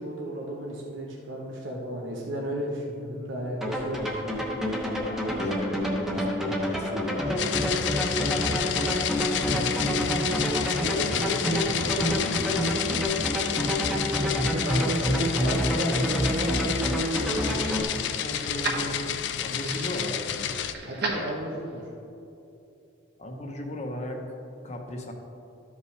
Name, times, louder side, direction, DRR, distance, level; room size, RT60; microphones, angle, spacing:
voice 1, 0.0-4.4 9.3-10.2 14.6-16.9 20.8-21.8, right 1 dB, 90° right, -3 dB, 1.0 m, -34 dB
sound 1, 3.6-17.8, equal, ahead, 0.9 m, -27 dB
voice 2, 5.0-9.2 9.8-9.9 10.8-13.2 17.9-21.0 23.2-24.2 24.6-25.1, equal, 35° left, 2 dB, 0.9 m, -37 dB
sound 2, 7.4-20.7, left 9 dB, 65° left, 0.4 m, -30 dB
sound 3, 16.8-21.8, right 3 dB, 60° right, 1.4 m, -37 dB
13.0 x 5.4 x 3.3 m, 2.8 s
head